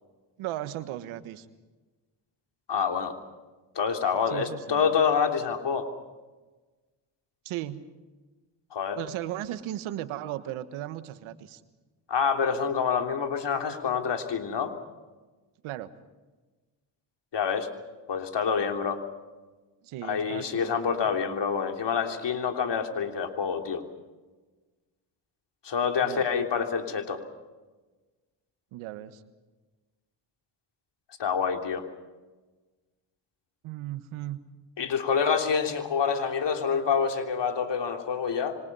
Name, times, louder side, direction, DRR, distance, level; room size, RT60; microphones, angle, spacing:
voice 1, 0.4-1.5 4.3-5.0 7.4-7.9 9.0-11.6 15.6-15.9 19.8-21.1 26.0-26.3 28.7-29.2 33.6-34.5, right 13 dB, 85° right, 12 dB, 1.5 m, -36 dB
voice 2, 2.7-3.2 3.7-5.9 8.7-9.0 12.1-14.7 17.3-17.7 18.1-19.0 20.0-23.8 25.6-27.2 31.2-31.8 34.8-38.6, left 6 dB, 60° left, 5 dB, 3.3 m, -27 dB
26.5 x 25.0 x 5.6 m, 1.2 s
supercardioid pair, 50°, 48 cm